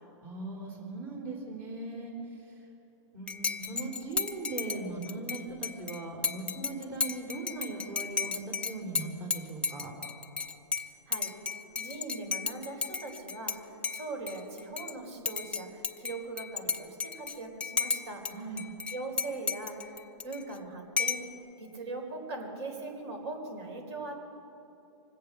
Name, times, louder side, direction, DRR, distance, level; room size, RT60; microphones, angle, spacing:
voice 1, 0.2-2.6 3.1-9.9 18.3-18.6, right 2 dB, 40° right, -3 dB, 3.8 m, -39 dB
Dishes pots and pans / Cutlery silverware / Chink clink, 3.3-13.6 13.8-14.9 15.2-18.3 18.6-20.6 21.0-21.3, left 5 dB, 5° left, 0.4 m, -34 dB
voice 2, 11.1-11.4 11.8-18.2 18.9-20.0 20.2-21.3 21.6-24.2, right 2 dB, 55° right, 2 dB, 4.4 m, -40 dB
25.0 x 8.6 x 6.7 m, 3.0 s
hypercardioid pair, 135°, 16 cm